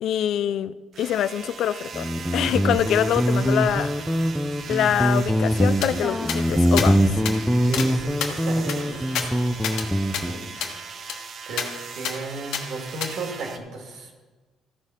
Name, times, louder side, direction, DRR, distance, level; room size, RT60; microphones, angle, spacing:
voice 1, 0.0-4.1 4.7-7.0, left 10 dB, 65° left, 0.3 m, -25 dB
sound 1, 0.9-13.6, right 6 dB, 45° right, 0.7 m, -39 dB
Guitar, 1.9-10.4, equal, ahead, 0.5 m, -23 dB
sound 2, 5.8-5.9 6.3-6.4 6.8-6.9 7.3-7.4 7.7-7.9 8.2-9.9 10.1-10.2 10.6-10.7 11.1-11.2 11.6-11.7 12.0-12.2 12.5-12.6 13.0-13.1, left 7 dB, 85° left, 1.3 m, -29 dB
voice 2, 7.7-9.3 10.2-10.5 11.4-14.1, right 3 dB, 65° right, 2.0 m, -35 dB
14.5 x 4.9 x 5.6 m
cardioid pair, 150°, 0 cm